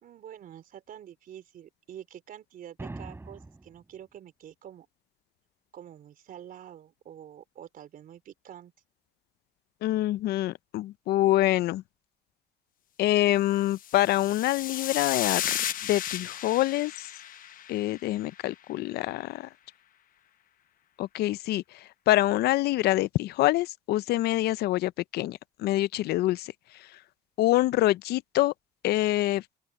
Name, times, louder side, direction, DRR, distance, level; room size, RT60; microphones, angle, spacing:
voice 1, 0.0-4.9 5.7-8.7, right 10 dB, 55° right, 3.9 m, -47 dB
sound 1, 2.8-3.8, right 2 dB, 15° right, 4.8 m, -41 dB
voice 2, 9.8-11.8 13.0-15.6 15.8-16.9 17.7-19.5 21.0-21.6 22.1-26.5 27.4-28.5 28.8-29.4, left 15 dB, 70° left, 0.5 m, -25 dB
sound 2, 13.7-18.2, left 11 dB, 55° left, 0.9 m, -34 dB
open air
cardioid pair, 110°, 17 cm